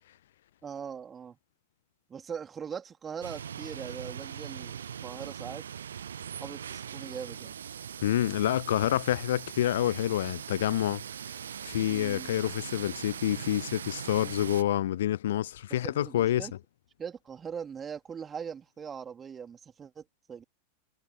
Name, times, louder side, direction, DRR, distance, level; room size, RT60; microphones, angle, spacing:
voice 1, 0.6-1.4 2.1-5.6 6.4-7.5 11.9-12.3 15.8-16.5 17.0-20.4, right 7 dB, 20° right, 3.6 m, -41 dB
sound 1, 3.2-14.6, right 8 dB, 65° right, 0.6 m, -41 dB
voice 2, 8.0-11.0 11.6-16.5, left 12 dB, 60° left, 0.5 m, -28 dB
figure-of-eight pair, 90°, 0 cm